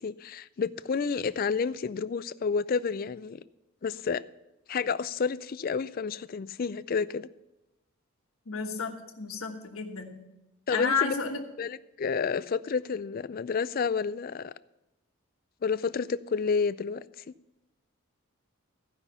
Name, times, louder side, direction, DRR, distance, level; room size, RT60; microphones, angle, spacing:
voice 1, 0.0-3.4 3.8-4.2 4.7-7.3 10.7-11.1 11.6-14.5 15.6-17.3, left 5 dB, 40° left, 0.3 m, -30 dB
voice 2, 8.5-10.2 10.7-11.4, left 5 dB, 75° left, 1.4 m, -31 dB
15.0 x 5.7 x 6.8 m
head